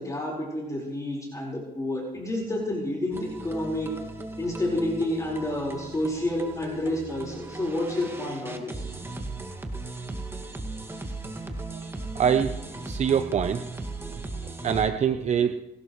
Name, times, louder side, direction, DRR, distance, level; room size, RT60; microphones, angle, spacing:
voice 1, 0.0-3.9 4.4-8.9, left 1 dB, 20° left, -2 dB, 4.8 m, -29 dB
sound 1, 3.1-14.9, right 2 dB, 15° right, 2.1 m, -37 dB
voice 2, 12.1-12.6 12.8-13.6 14.6-15.5, right 8 dB, 40° right, 8 dB, 0.8 m, -24 dB
29.5 x 12.5 x 3.2 m, 0.98 s
cardioid pair, 110°, 17 cm